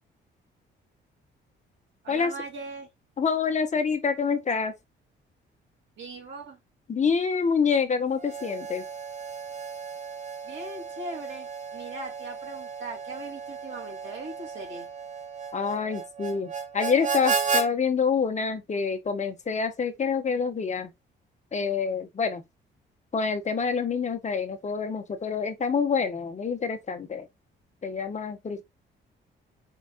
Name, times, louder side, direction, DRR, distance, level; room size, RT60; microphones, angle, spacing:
voice 1, 2.0-2.9 6.0-6.6 10.4-14.9, right 2 dB, 70° right, 2.8 m, -39 dB
voice 2, 3.2-4.7 6.9-8.8 15.5-20.9 21.5-22.4 23.1-27.3 27.8-28.6, left 5 dB, 35° left, 1.0 m, -27 dB
Harmonica, 8.2-17.7, right 5 dB, 35° right, 1.0 m, -34 dB
4.7 x 4.1 x 2.4 m
cardioid pair, 90°, 20 cm